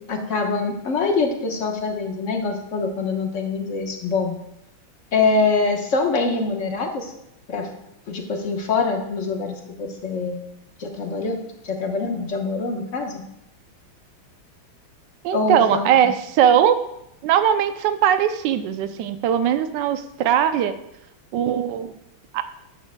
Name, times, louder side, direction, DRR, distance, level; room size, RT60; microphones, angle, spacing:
voice 1, 0.0-4.3 5.1-7.1 7.5-7.7 8.1-10.4 10.8-11.4 11.6-13.2 15.3-16.0, left 4 dB, 45° left, 3 dB, 1.2 m, -24 dB
voice 2, 15.2-16.8 17.2-20.7 21.3-21.9 22.3-22.4, right 9 dB, 70° right, 10 dB, 1.2 m, -20 dB
13.0 x 9.5 x 2.2 m, 0.80 s
omnidirectional pair, 2.3 m